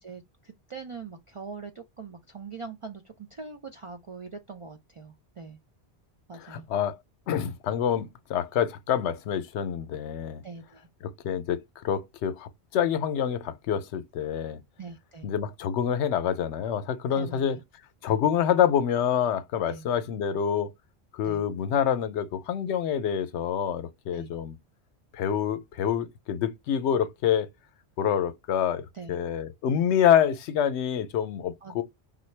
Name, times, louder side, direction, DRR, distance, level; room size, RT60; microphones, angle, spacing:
voice 1, 0.0-5.6 6.3-6.7 10.4-10.9 14.8-15.3 17.1-17.6 19.7-19.9 21.2-21.4 24.1-24.3 28.9-29.2 31.6-31.8, right 4 dB, 60° right, 0.3 m, -42 dB
voice 2, 6.3-7.0 7.3-10.4 11.0-14.6 15.2-17.6 18.0-20.7 21.1-24.6 25.1-27.5 28.0-31.8, left 9 dB, 85° left, 0.9 m, -27 dB
3.7 x 2.2 x 3.1 m
omnidirectional pair, 1.1 m